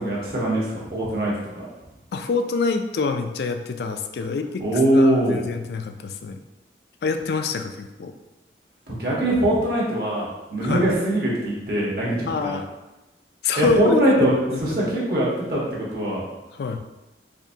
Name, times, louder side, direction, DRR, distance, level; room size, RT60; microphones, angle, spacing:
voice 1, 0.0-1.6 4.6-5.4 8.9-12.6 13.6-16.2, right 1 dB, 55° right, -5 dB, 1.2 m, -22 dB
voice 2, 2.1-6.4 7.0-8.1 10.6-10.8 12.3-12.6 13.4-14.0 14.5-14.9 16.6-16.8, left 4 dB, 65° left, 7 dB, 0.3 m, -26 dB
5.0 x 2.7 x 2.7 m, 1.1 s
head